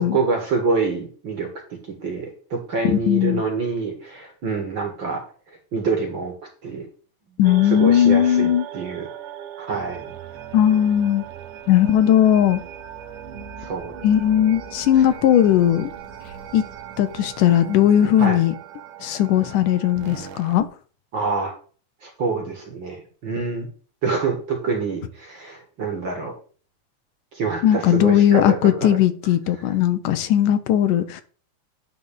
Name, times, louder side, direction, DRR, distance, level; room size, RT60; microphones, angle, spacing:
voice 1, 0.0-6.3 6.6-6.9 7.6-9.1 9.6-10.2 13.6-13.9 18.2-18.4 21.1-21.5 22.0-23.7 24.0-26.3 27.3-29.0, right 4 dB, 40° right, 2.2 m, -26 dB
voice 2, 3.1-3.4 7.4-8.7 10.5-11.2 11.7-12.6 14.0-15.9 16.5-16.6 17.0-18.5 19.0-20.7 27.6-31.2, left 10 dB, 80° left, 2.5 m, -18 dB
sound 1, 7.4-20.6, right 9 dB, 85° right, 2.7 m, -38 dB
10.5 x 4.1 x 7.1 m
omnidirectional pair, 3.6 m